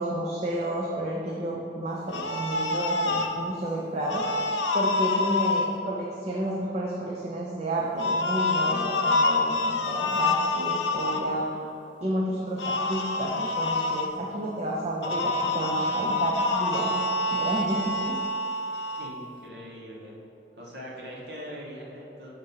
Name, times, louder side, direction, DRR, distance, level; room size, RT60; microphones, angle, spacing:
voice 1, 0.0-4.3 4.7-11.5 12.0-16.9 17.3-18.2, right 1 dB, 35° right, -3 dB, 0.5 m, -31 dB
sound 1, 2.1-3.3 4.1-5.7 8.0-11.2 12.6-14.1 15.0-19.1, left 2 dB, 85° left, 0.5 m, -27 dB
voice 2, 19.0-20.1 20.6-22.3, equal, 65° right, -4 dB, 1.3 m, -41 dB
7.2 x 2.6 x 5.5 m, 2.6 s
head